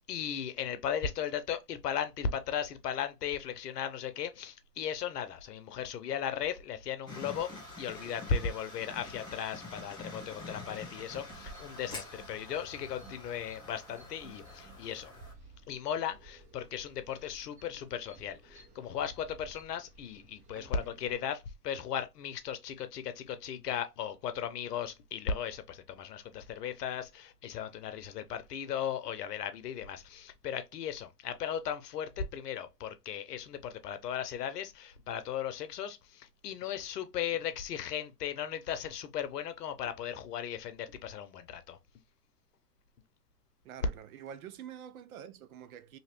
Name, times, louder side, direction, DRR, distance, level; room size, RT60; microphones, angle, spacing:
voice 1, 0.0-7.5 7.8-15.1 15.7-41.8, left 8 dB, 75° left, 0.7 m, -37 dB
sound 1, 7.1-15.3, left 2 dB, 10° left, 1.1 m, -47 dB
sound 2, 11.3-21.1, right 3 dB, 15° right, 0.6 m, -56 dB
voice 2, 20.5-21.2 43.6-46.0, right 9 dB, 60° right, 0.5 m, -47 dB
2.9 x 2.8 x 3.0 m
hypercardioid pair, 110°, 48 cm